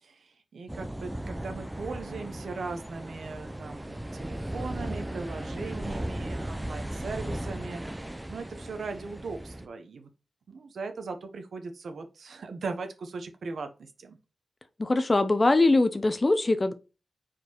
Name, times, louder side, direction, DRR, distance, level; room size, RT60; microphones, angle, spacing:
voice 1, 0.0-7.8 8.3-10.1 10.5-14.2, right 4 dB, 90° right, 1.0 m, -39 dB
sound 1, 0.7-9.7, right 1 dB, 10° right, 0.6 m, -36 dB
voice 2, 14.8-16.7, left 2 dB, 30° left, 0.6 m, -22 dB
4.7 x 4.5 x 4.4 m
wide cardioid pair, 115°, 0 cm